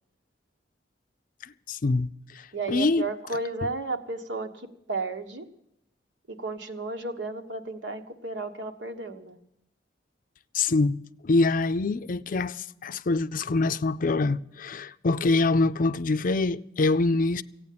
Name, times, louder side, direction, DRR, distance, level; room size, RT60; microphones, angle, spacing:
voice 1, 1.7-2.1 2.7-3.0 10.5-11.0 11.2-17.4, left 3 dB, 50° left, 0.5 m, -24 dB
voice 2, 2.5-5.5 6.3-9.4, right 3 dB, 80° right, 1.3 m, -33 dB
16.0 x 9.0 x 8.5 m
head